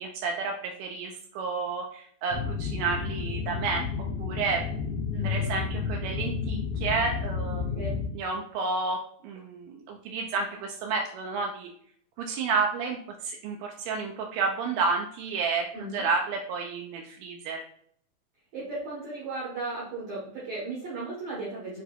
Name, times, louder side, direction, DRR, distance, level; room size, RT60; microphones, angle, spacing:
voice 1, 0.0-3.8 4.2-4.7 5.2-7.9 8.1-11.7 12.2-17.6, right 4 dB, 85° right, 1 dB, 1.8 m, -31 dB
sound 1, 2.3-8.1, left 5 dB, 85° left, 2.3 m, -31 dB
voice 2, 5.1-5.5 7.7-7.9 15.7-16.1 18.5-21.8, right 3 dB, 70° right, -6 dB, 1.4 m, -36 dB
6.7 x 2.7 x 2.2 m, 0.63 s
omnidirectional pair, 4.1 m